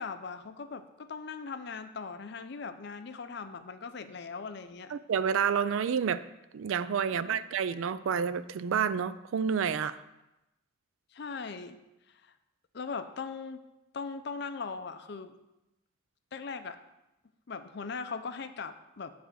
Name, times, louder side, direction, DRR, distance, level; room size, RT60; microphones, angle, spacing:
voice 1, 0.0-4.9 7.0-7.4 11.1-11.8 12.1-12.3 12.7-13.6 13.9-15.3 16.3-16.8 17.5-19.1, left 5 dB, 55° left, 10 dB, 0.5 m, -40 dB
voice 2, 4.9-6.2 6.5-10.0, right 7 dB, 75° right, 15 dB, 0.3 m, -29 dB
8.8 x 3.4 x 6.2 m, 0.95 s
head